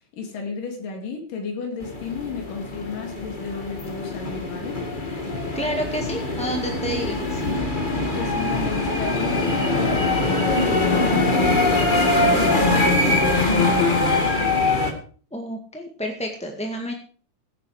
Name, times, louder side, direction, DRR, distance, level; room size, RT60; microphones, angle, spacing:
voice 1, 0.1-4.8 8.2-13.7, left 5 dB, 90° left, 3 dB, 4.1 m, -33 dB
sound 1, 1.8-14.9, left 2 dB, 20° left, 1.4 m, -22 dB
voice 2, 5.5-7.4 15.3-16.9, equal, 5° left, 2 dB, 0.9 m, -29 dB
16.5 x 9.0 x 4.9 m, 0.42 s
omnidirectional pair, 3.7 m